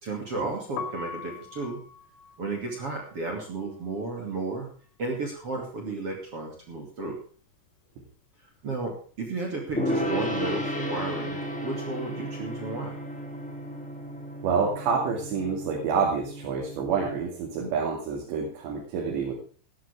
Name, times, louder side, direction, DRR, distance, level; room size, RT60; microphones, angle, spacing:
voice 1, 0.0-1.8 2.4-4.7 5.0-7.2 8.6-12.9, right 3 dB, 40° right, 1 dB, 3.1 m, -33 dB
Piano, 0.6-6.6 6.8-8.4 8.7-15.1, left 6 dB, 75° left, 3.5 m, -45 dB
Gong, 9.8-17.2, equal, ahead, 2.5 m, -33 dB
voice 2, 14.4-19.4, right 5 dB, 85° right, 0 dB, 4.8 m, -28 dB
15.5 x 13.0 x 3.6 m, 0.41 s
omnidirectional pair, 4.9 m